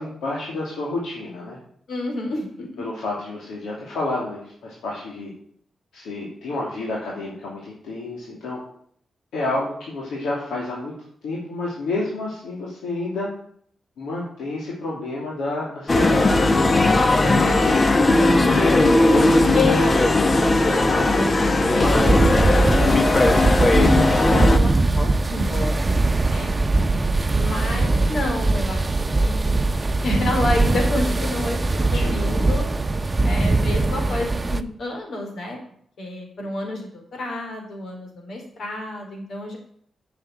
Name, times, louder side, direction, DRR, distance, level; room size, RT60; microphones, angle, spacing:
voice 1, 0.0-1.6 2.8-5.3 5.9-8.6 9.3-10.9 11.2-13.3 14.0-16.5 31.8-32.5, left 2 dB, 90° left, -4 dB, 2.6 m, -30 dB
voice 2, 1.9-2.8 17.1-19.0 19.5-19.9 20.6-25.9 26.1-26.5 27.3-29.7 30.0-32.6 33.2-35.6 36.0-39.6, left 2 dB, 75° left, 2 dB, 4.1 m, -30 dB
sound 1, 15.9-24.6, left 2 dB, 40° left, 1.3 m, -17 dB
sound 2, 21.8-34.6, right 2 dB, 30° right, 0.9 m, -21 dB
7.8 x 7.6 x 8.7 m, 0.63 s
cardioid pair, 55°, 0 cm